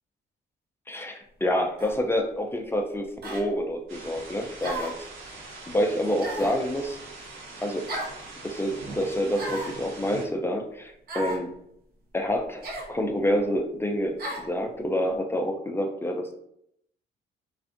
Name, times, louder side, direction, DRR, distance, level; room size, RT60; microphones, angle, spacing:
voice 1, 0.9-5.1 5.7-7.0 7.6-7.9 8.4-11.5 12.1-16.3, equal, 10° left, 3 dB, 0.3 m, -28 dB
sound 1, 1.8-2.0 3.2-3.5 4.6-5.0 6.2-6.6 7.9-8.2 9.3-9.8 11.1-11.4 12.6-12.9 14.2-14.5, right 1 dB, 50° right, 0.6 m, -34 dB
sound 2, 3.9-10.3, right 3 dB, 85° right, 0.8 m, -42 dB
2.5 x 2.4 x 2.4 m, 0.74 s
cardioid pair, 90°, 20 cm